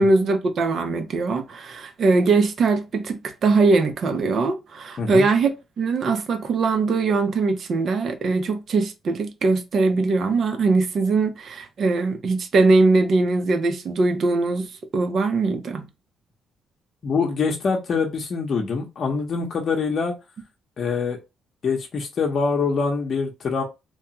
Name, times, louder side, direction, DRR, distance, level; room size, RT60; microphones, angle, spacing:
voice 1, 0.0-15.9, right 3 dB, 55° right, 0.7 m, -21 dB
voice 2, 17.0-20.1 20.8-21.2 21.6-23.6, left 5 dB, 50° left, 0.8 m, -24 dB
2.9 x 2.3 x 2.8 m
cardioid pair, 80°, 0 cm